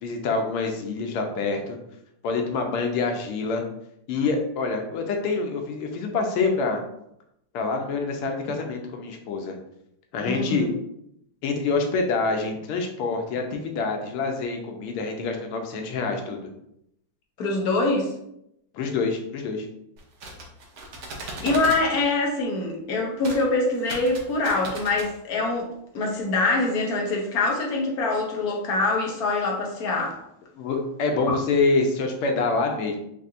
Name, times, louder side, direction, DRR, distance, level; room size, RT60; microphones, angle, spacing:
voice 1, 0.0-1.8 2.2-3.6 4.1-6.8 7.5-9.6 10.1-10.7 11.4-16.5 18.7-19.7 30.6-33.0, left 4 dB, 85° left, 3 dB, 1.6 m, -26 dB
voice 2, 10.3-10.7 17.4-18.1 21.2-25.7 25.9-30.2 31.3-31.4, left 2 dB, 60° left, 0 dB, 1.0 m, -24 dB
sound 1, 20.0-21.8 23.2-23.4 23.8-25.1, right 2 dB, 60° right, 1.1 m, -37 dB
5.5 x 2.6 x 2.5 m, 0.77 s
omnidirectional pair, 2.3 m